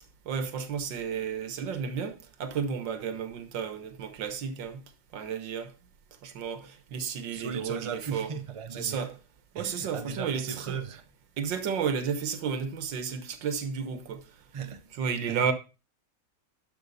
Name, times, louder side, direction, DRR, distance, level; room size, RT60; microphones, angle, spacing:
voice 1, 0.3-4.8 5.1-5.7 6.2-8.3 8.7-9.1 9.6-10.8 11.4-14.3 15.0-15.5, right 6 dB, 85° right, 1.8 m, -32 dB
voice 2, 7.3-9.2 9.5-11.1 14.5-14.9 15.3-15.5, right 6 dB, 55° right, 0.3 m, -37 dB
12.0 x 5.5 x 4.1 m
omnidirectional pair, 1.9 m